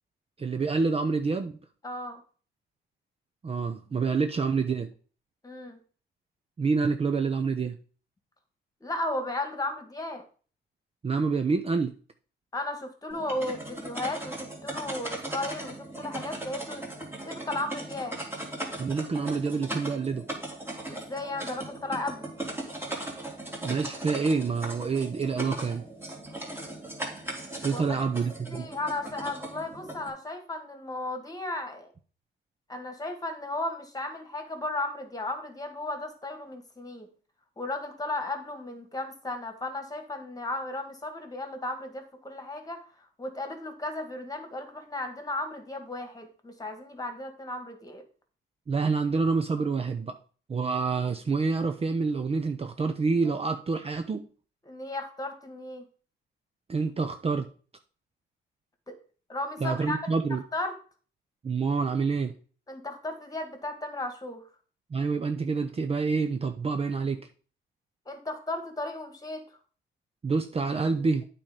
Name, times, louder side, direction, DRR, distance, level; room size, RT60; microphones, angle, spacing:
voice 1, 0.4-1.5 3.4-4.9 6.6-7.8 11.0-11.9 18.8-20.3 23.6-25.8 27.6-28.7 48.7-50.1 50.5-54.3 56.7-57.5 59.6-60.4 61.4-62.3 64.9-67.3 70.2-71.2, right 4 dB, 30° right, 7 dB, 0.7 m, -27 dB
voice 2, 1.8-2.2 5.4-5.8 8.8-10.2 12.5-14.4 14.6-16.8 17.2-18.2 20.9-22.3 27.7-28.2 28.5-31.9 32.7-37.1 37.6-42.8 43.2-48.0 54.7-55.8 58.9-59.0 59.3-60.7 62.7-64.4 68.1-69.4, left 2 dB, 20° left, 7 dB, 2.0 m, -35 dB
sound 1, 13.1-30.1, right 1 dB, 10° right, 2.7 m, -38 dB
8.7 x 4.3 x 5.2 m, 0.40 s
cardioid pair, 90°, 20 cm